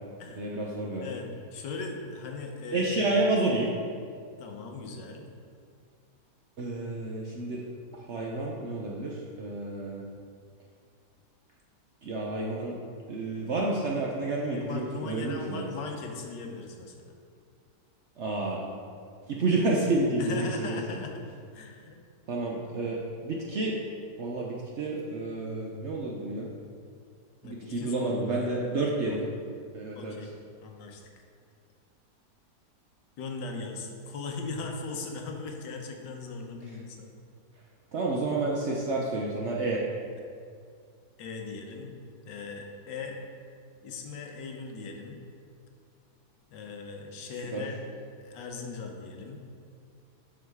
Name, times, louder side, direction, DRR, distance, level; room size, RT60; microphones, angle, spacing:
voice 1, 0.3-1.1 2.7-3.7 6.6-7.6 8.1-10.1 12.0-12.8 13.1-15.7 18.2-18.7 19.3-21.0 22.3-23.8 24.2-26.5 27.4-29.2 29.7-30.2 36.7-36.8 37.9-39.8 47.5-47.6, right 2 dB, 60° right, -2 dB, 0.7 m, -30 dB
voice 2, 1.0-3.1 4.4-5.3 14.5-17.1 20.2-21.2 21.5-22.0 27.4-29.2 29.9-30.3 30.6-31.0 33.2-37.1 41.2-41.9 42.3-43.2 43.8-45.2 46.5-47.8 48.2-49.4, left 4 dB, 85° left, 2 dB, 1.5 m, -39 dB
7.3 x 6.0 x 3.5 m, 2.2 s
omnidirectional pair, 1.8 m